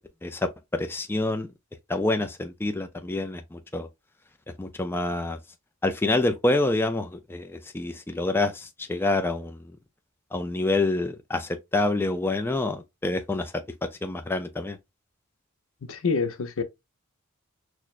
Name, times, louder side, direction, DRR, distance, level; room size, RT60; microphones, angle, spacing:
voice 1, 0.2-1.5 1.9-3.9 4.6-5.4 5.8-9.6 10.3-14.8, left 2 dB, 10° left, 0.3 m, -27 dB
voice 2, 15.8-16.6, left 4 dB, 65° left, 0.6 m, -27 dB
6.1 x 2.1 x 2.4 m
head